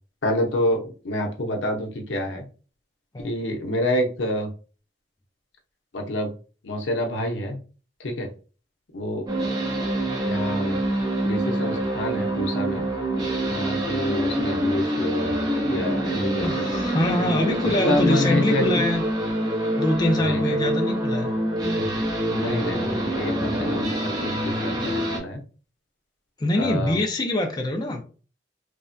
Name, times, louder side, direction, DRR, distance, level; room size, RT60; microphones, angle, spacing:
voice 1, 0.2-2.4 3.2-4.5 5.9-6.3 6.6-7.6 8.0-8.3 8.9-9.2 10.2-10.8 11.2-12.9 13.5-15.3 15.7-16.7 17.6-18.6 20.2-20.8 21.7-21.9 22.3-23.9 24.2-25.4 26.6-27.0, left 1 dB, 80° left, 0.7 m, -27 dB
sound 1, 9.3-25.2, right 1 dB, 25° right, 0.7 m, -26 dB
voice 2, 16.4-19.1 19.8-21.3 26.4-28.0, left 1 dB, 25° left, 0.4 m, -24 dB
3.2 x 2.1 x 2.6 m
head